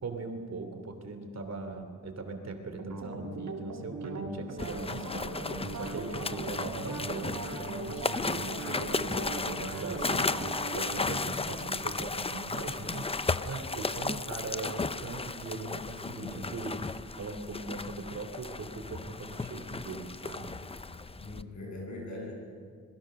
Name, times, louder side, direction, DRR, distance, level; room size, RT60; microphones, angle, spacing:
voice 1, 0.0-20.5, right 3 dB, 60° right, 6 dB, 2.9 m, -40 dB
sound 1, 2.8-11.2, right 3 dB, 85° right, 2.6 m, -39 dB
sound 2, 4.6-21.4, left 3 dB, 20° left, 0.5 m, -35 dB
voice 2, 11.1-11.6 16.0-16.5 21.2-22.3, left 2 dB, 70° left, -1 dB, 7.9 m, -41 dB
26.5 x 22.0 x 6.6 m, 2.1 s
wide cardioid pair, 145°, 30 cm